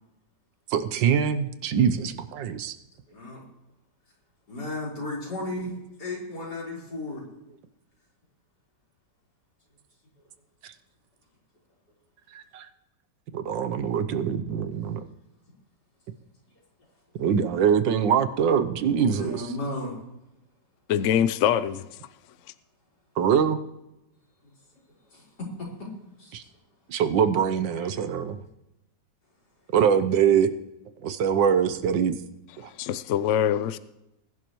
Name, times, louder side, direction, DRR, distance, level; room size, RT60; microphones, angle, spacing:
voice 1, 0.7-2.8 10.6-10.7 12.3-12.7 13.3-15.0 17.2-19.4 23.2-23.6 26.3-26.4 26.9-28.4 29.7-30.5 31.0-32.1 32.6-32.7, right 7 dB, 90° right, 1.6 m, -23 dB
voice 2, 3.1-3.4 4.5-5.7 6.0-7.2 19.0-20.0 25.1-25.3 25.6-25.9 26.2-26.3 27.8-27.9, left 2 dB, 65° left, 4.9 m, -34 dB
voice 3, 20.9-21.9 32.8-33.8, left 9 dB, 80° left, 0.6 m, -23 dB
20.5 x 11.0 x 3.1 m
omnidirectional pair, 1.9 m